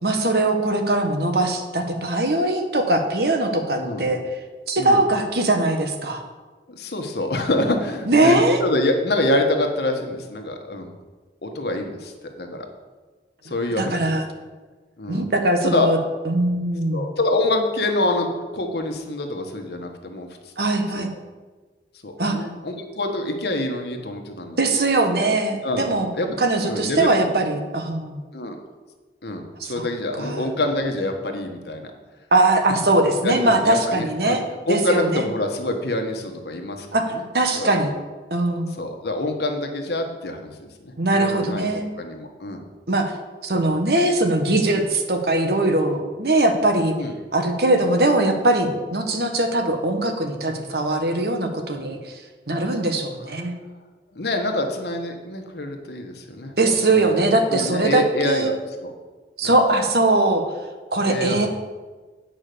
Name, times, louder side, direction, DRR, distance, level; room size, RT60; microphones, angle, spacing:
voice 1, 0.0-4.2 4.7-6.2 8.1-8.6 13.8-14.2 15.1-16.0 16.3-17.0 20.6-21.1 22.2-22.4 24.6-26.1 26.4-28.2 29.6-29.7 30.2-30.5 32.3-34.4 34.7-35.2 36.9-37.0 37.3-37.9 38.3-38.7 41.0-41.9 42.9-43.1 43.4-46.9 47.3-52.2 52.5-53.5 56.6-58.5 59.4-60.4 60.9-61.5, right 2 dB, 65° right, 5 dB, 1.3 m, -21 dB
voice 2, 3.8-4.1 4.8-5.0 6.7-10.9 11.4-12.7 13.4-14.2 15.0-15.3 15.6-15.9 16.9-20.5 20.9-21.0 22.0-24.6 25.6-25.9 26.2-26.4 26.7-27.2 28.3-28.6 29.2-31.9 32.6-32.7 33.2-34.4 34.7-36.9 37.1-37.2 37.5-37.8 38.8-42.6 43.5-43.6 46.9-47.1 54.1-56.5 56.9-57.2 57.5-58.5 58.8-58.9 59.4-59.5 61.0-61.5, left 1 dB, 70° left, 4 dB, 1.3 m, -26 dB
9.3 x 5.5 x 6.8 m, 1.3 s
head